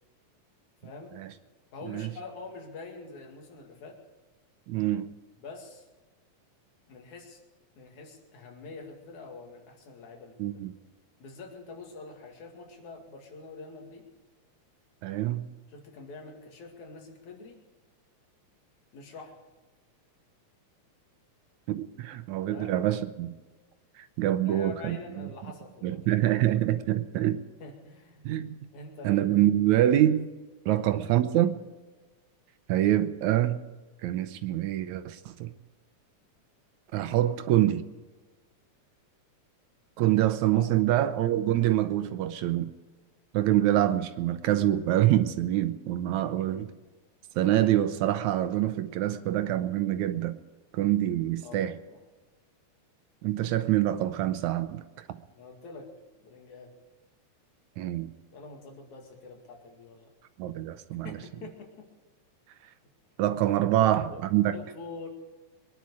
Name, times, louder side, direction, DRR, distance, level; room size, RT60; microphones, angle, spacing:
voice 1, 0.8-1.2 1.7-4.0 5.4-5.9 6.9-7.4 7.8-10.4 11.2-14.1 15.7-17.6 18.9-19.4 22.5-22.8 24.4-26.1 27.6-28.3 28.7-29.5 30.7-30.9 40.5-40.7 46.2-46.7 51.4-52.0 55.4-55.9 56.2-56.7 58.3-60.1 61.0-61.9 63.8-64.2 64.5-65.1, left 3 dB, 70° left, 3.6 m, -45 dB
voice 2, 4.7-5.1 10.4-10.7 15.0-15.5 21.7-23.4 24.0-25.3 25.8-27.4 28.3-28.5 29.0-30.3 30.7-31.6 32.7-33.7 34.0-35.5 36.9-37.8 40.0-42.7 43.3-46.7 47.4-50.4 50.7-51.8 53.2-55.2 57.8-58.1 60.4-61.2 63.2-64.6, right 13 dB, 80° right, 2.0 m, -26 dB
23.5 x 10.5 x 4.8 m
omnidirectional pair, 3.5 m